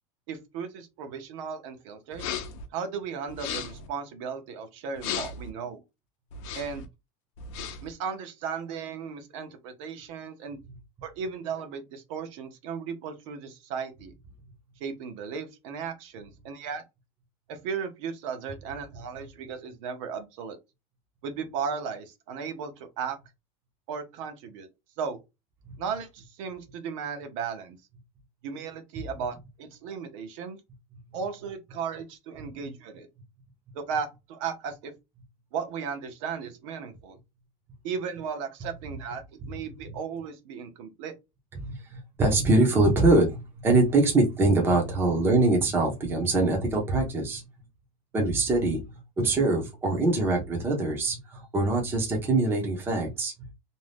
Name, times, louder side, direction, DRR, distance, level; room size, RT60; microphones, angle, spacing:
voice 1, 0.3-2.3 2.7-5.8 6.5-6.8 7.8-10.6 11.0-14.1 14.8-16.8 17.5-20.6 21.2-23.2 23.9-24.7 25.0-25.2 25.8-27.8 28.4-30.6 31.1-33.1 33.7-34.9 35.5-37.2 37.8-41.1, right 6 dB, 65° right, 0.8 m, -35 dB
sound 1, 2.1-2.7 3.3-3.9 5.0-5.5 6.3-6.9 7.4-7.9, left 7 dB, 60° left, 0.6 m, -35 dB
voice 2, 41.6-47.5 48.1-53.3, right 2 dB, 10° right, 0.6 m, -24 dB
2.6 x 2.2 x 3.3 m
cardioid pair, 170°, 18 cm